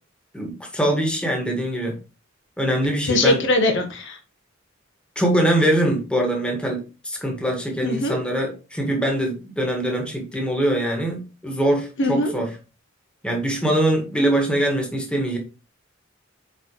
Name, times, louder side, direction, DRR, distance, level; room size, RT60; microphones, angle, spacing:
voice 1, 0.3-2.0 2.6-3.4 5.2-12.6 13.2-15.4, right 1 dB, 5° left, 1.8 m, -23 dB
voice 2, 3.1-4.2 7.8-8.2 12.0-12.3, left 2 dB, 65° left, 1.4 m, -21 dB
8.9 x 4.3 x 3.2 m
head